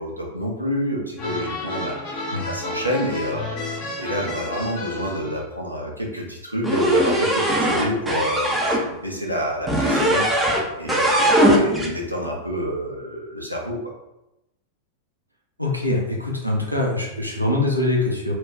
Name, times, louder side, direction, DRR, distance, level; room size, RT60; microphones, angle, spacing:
voice 1, 0.0-13.8, equal, 90° right, -2 dB, 0.6 m, -28 dB
sound 1, 1.2-5.4, left 2 dB, 40° left, 0.8 m, -31 dB
sound 2, 6.6-8.8 9.7-10.6 10.9-11.9, right 1 dB, 10° right, 0.5 m, -19 dB
voice 2, 15.6-18.3, left 2 dB, 90° left, -1 dB, 0.6 m, -23 dB
2.3 x 2.2 x 3.5 m, 0.91 s
figure-of-eight pair, 90°, 0 cm